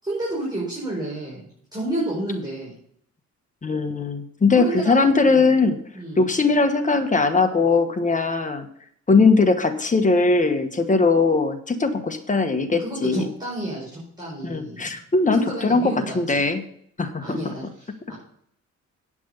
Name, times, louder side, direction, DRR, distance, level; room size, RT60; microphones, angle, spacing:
voice 1, 0.0-2.7 4.5-5.5 5.9-6.3 12.8-15.0 15.3-16.4 17.2-18.1, right 1 dB, 15° right, -6 dB, 5.1 m, -30 dB
voice 2, 3.6-5.8 6.2-8.7 9.1-13.3 14.4-15.8 16.1-16.6 17.0-17.5, left 3 dB, 25° left, 7 dB, 1.3 m, -20 dB
9.4 x 6.2 x 6.8 m, 0.66 s
cardioid pair, 90°, 30 cm